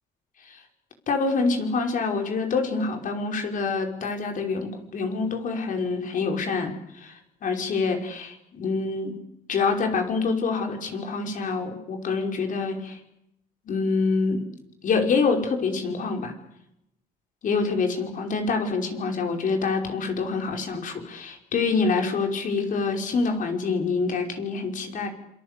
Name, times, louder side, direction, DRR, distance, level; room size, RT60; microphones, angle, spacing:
voice 1, 1.1-9.2 9.5-13.0 13.7-14.4 14.8-16.3 17.4-25.1, left 4 dB, 50° left, 4 dB, 5.5 m, -26 dB
27.0 x 25.0 x 8.4 m, 0.81 s
cardioid pair, 110°, 17 cm